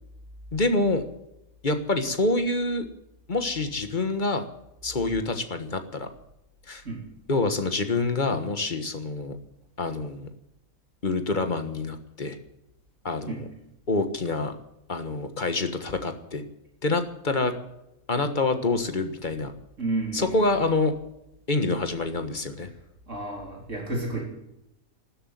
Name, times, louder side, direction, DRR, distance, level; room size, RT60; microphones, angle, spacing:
voice 1, 0.5-1.0 1.6-2.9 3.3-4.4 4.8-6.1 6.7-6.8 7.3-9.4 9.8-10.3 11.0-12.4 13.0-13.4 13.9-14.5 14.9-16.4 16.8-17.5 18.1-19.5 20.1-20.9 21.5-22.7, left 2 dB, 35° left, 8 dB, 1.5 m, -26 dB
voice 2, 19.8-20.5 23.1-24.2, right 2 dB, 55° right, 0 dB, 4.0 m, -31 dB
13.0 x 11.5 x 9.4 m, 0.87 s
omnidirectional pair, 1.5 m